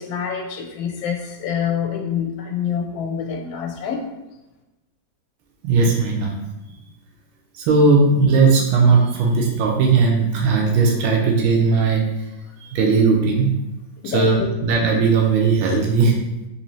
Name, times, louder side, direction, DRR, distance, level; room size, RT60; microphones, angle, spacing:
voice 1, 0.0-4.0 14.0-14.5, left 7 dB, 80° left, 3 dB, 1.3 m, -26 dB
voice 2, 5.6-6.3 7.5-12.0 12.6-13.5 14.0-16.2, right 4 dB, 90° right, 0 dB, 1.5 m, -17 dB
4.1 x 2.7 x 3.0 m, 0.99 s
omnidirectional pair, 2.2 m